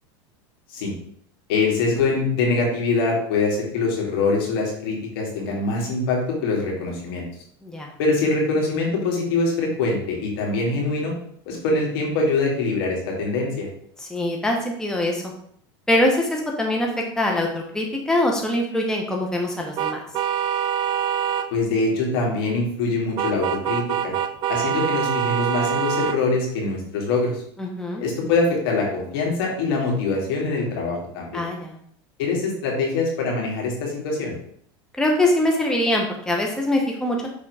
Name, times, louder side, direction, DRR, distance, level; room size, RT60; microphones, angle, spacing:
voice 1, 1.5-7.3 8.0-11.1 11.5-13.7 21.5-24.1 24.5-27.4 28.0-31.4 32.2-34.3, left 3 dB, 75° left, -1 dB, 2.4 m, -23 dB
voice 2, 14.0-15.2 15.9-20.0 27.6-28.0 31.3-31.8 35.0-37.3, left 1 dB, 5° left, 0 dB, 1.0 m, -23 dB
sound 1, 19.8-21.5 23.2-26.2, right 9 dB, 40° right, 0.4 m, -24 dB
6.2 x 3.6 x 4.8 m, 0.64 s
supercardioid pair, 125°, 12 cm